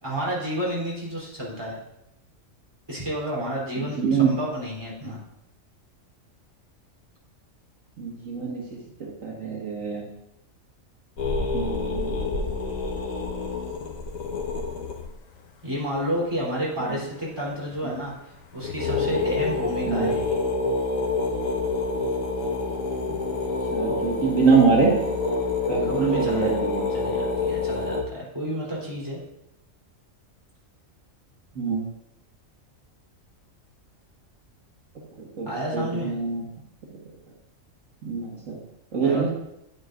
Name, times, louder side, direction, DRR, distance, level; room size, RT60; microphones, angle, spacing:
voice 1, 0.0-1.8 2.9-5.2 15.6-20.4 25.8-26.5 26.9-29.2 35.4-36.1 39.0-39.3, equal, 20° right, -7 dB, 3.3 m, -30 dB
voice 2, 3.8-4.3 8.0-8.6 9.0-10.0 11.5-12.1 19.9-20.1 23.7-24.9 25.7-26.8 31.6-31.8 35.2-36.4 38.0-38.5 38.9-39.3, right 5 dB, 75° right, -3 dB, 1.9 m, -24 dB
sound 1, 11.2-15.1 17.8-18.0 18.3-18.4 18.6-28.0, left 3 dB, 90° left, 1.5 m, -27 dB
9.4 x 9.2 x 2.5 m, 0.83 s
omnidirectional pair, 1.4 m